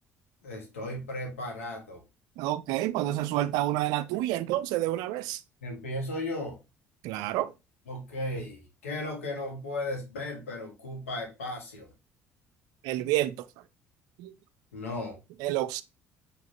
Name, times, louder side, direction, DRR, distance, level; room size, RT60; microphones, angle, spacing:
voice 1, 0.4-2.0 5.6-6.6 7.9-11.9 14.7-15.2, left 1 dB, 80° left, 1.1 m, -35 dB
voice 2, 2.4-5.4 7.0-7.5 12.8-13.5 14.2-14.3 15.4-15.8, right 14 dB, 65° right, 0.4 m, -29 dB
4.8 x 2.6 x 4.0 m
figure-of-eight pair, 50°, 7 cm